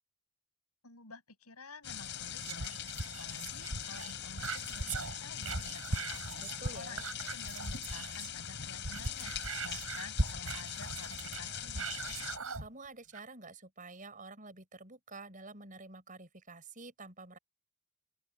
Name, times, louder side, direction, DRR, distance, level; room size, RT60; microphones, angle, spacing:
voice 1, 0.8-2.8 3.2-6.2 6.7-9.3 9.6-11.9, left 3 dB, 85° left, 6.9 m, -51 dB
sound 1, 1.8-12.4, left 9 dB, 50° left, 7.1 m, -42 dB
Whispering, 2.4-8.4 8.7-12.7 13.1-13.2, right 3 dB, 70° right, 5.5 m, -39 dB
voice 2, 6.4-7.1 12.6-17.4, right 3 dB, 35° right, 7.0 m, -49 dB
open air
head